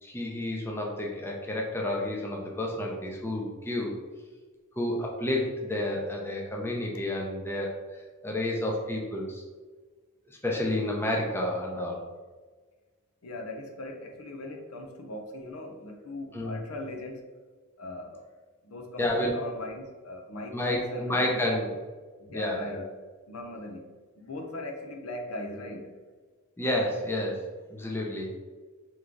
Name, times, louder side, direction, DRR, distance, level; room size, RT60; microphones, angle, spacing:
voice 1, 0.0-3.9 4.8-7.8 8.2-9.4 10.3-12.1 16.3-16.6 19.0-19.3 20.5-21.7 22.3-22.8 26.6-27.4 27.7-28.3, left 1 dB, 10° left, -1 dB, 0.5 m, -30 dB
voice 2, 13.2-17.3 17.8-18.3 18.6-21.4 22.2-22.8 23.3-25.9, left 1 dB, 85° left, 2 dB, 0.7 m, -39 dB
3.6 x 3.1 x 3.7 m, 1.4 s
head